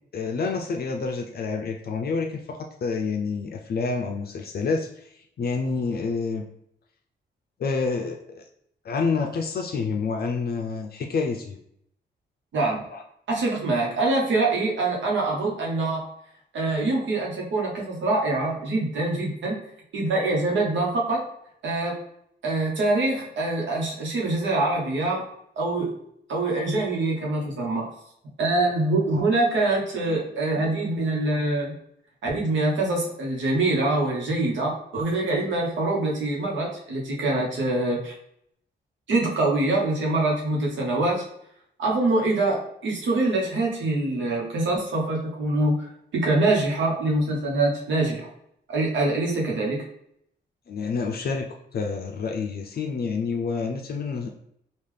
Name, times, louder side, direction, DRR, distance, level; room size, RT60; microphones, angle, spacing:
voice 1, 0.1-5.1 5.4-6.4 7.6-8.4 8.8-11.6 12.9-13.0 50.7-54.3, left 4 dB, 55° left, 3 dB, 0.4 m, -28 dB
voice 2, 12.5-12.8 13.3-16.0 16.5-19.6 19.9-21.2 21.6-22.0 22.4-25.2 25.6-25.9 26.3-27.9 28.4-31.7 32.2-38.1 39.1-41.2 41.8-45.8 46.1-48.3 48.7-49.8, right 2 dB, 85° right, -2 dB, 1.0 m, -24 dB
3.7 x 2.4 x 3.2 m, 0.72 s
cardioid pair, 75°, 19 cm